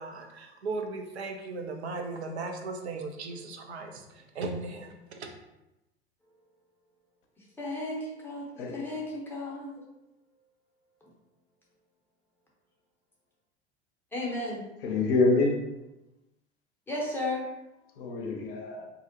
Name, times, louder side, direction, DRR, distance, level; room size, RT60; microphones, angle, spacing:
voice 1, 0.0-5.3, right 3 dB, 75° right, 3 dB, 0.5 m, -37 dB
voice 2, 7.6-8.4 8.7-9.8 14.1-14.7 16.9-17.4, left 2 dB, 5° left, -5 dB, 0.6 m, -34 dB
voice 3, 8.6-8.9 14.8-15.6 18.0-18.9, left 3 dB, 60° left, 2 dB, 0.5 m, -26 dB
2.6 x 2.0 x 2.5 m, 0.95 s
figure-of-eight pair, 80°, 33 cm